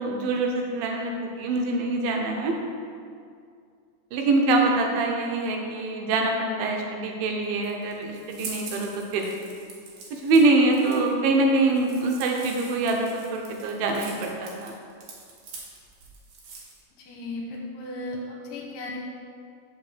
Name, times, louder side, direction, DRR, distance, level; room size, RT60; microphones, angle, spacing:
voice 1, 0.0-2.5 4.1-9.4 10.1-14.7, right 2 dB, 80° right, 1 dB, 2.5 m, -24 dB
sound 1, 7.4-16.8, right 4 dB, 60° right, 2.2 m, -43 dB
voice 2, 16.9-19.0, left 2 dB, 70° left, -2 dB, 2.3 m, -36 dB
6.3 x 5.4 x 6.6 m, 2.3 s
omnidirectional pair, 4.4 m